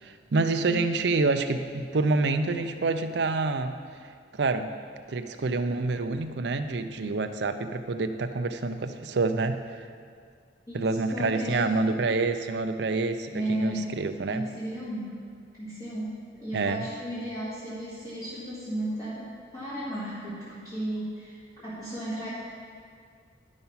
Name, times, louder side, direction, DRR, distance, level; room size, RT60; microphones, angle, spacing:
voice 1, 0.0-3.8 4.3-4.7 5.1-9.9 10.7-14.5 16.5-16.9, right 3 dB, 65° right, 8 dB, 0.5 m, -27 dB
voice 2, 10.7-11.8 13.3-14.0 14.3-15.2 15.6-22.3, right 1 dB, 20° left, -12 dB, 2.0 m, -34 dB
11.0 x 5.7 x 5.6 m, 2.1 s
head